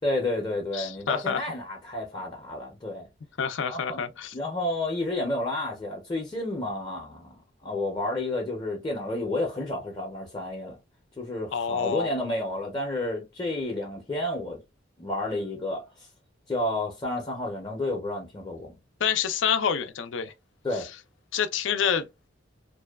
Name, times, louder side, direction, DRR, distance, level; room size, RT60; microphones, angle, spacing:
voice 1, 0.0-3.1 3.7-4.0 4.3-10.8 11.2-14.6 15.0-15.8 16.5-18.8 20.6-20.8, left 2 dB, 25° left, 0.6 m, -31 dB
voice 2, 0.7-1.4 3.4-4.3 11.5-12.1 19.0-20.3 20.8-20.9 21.3-22.1, left 7 dB, 80° left, 0.4 m, -27 dB
2.6 x 2.2 x 2.2 m
head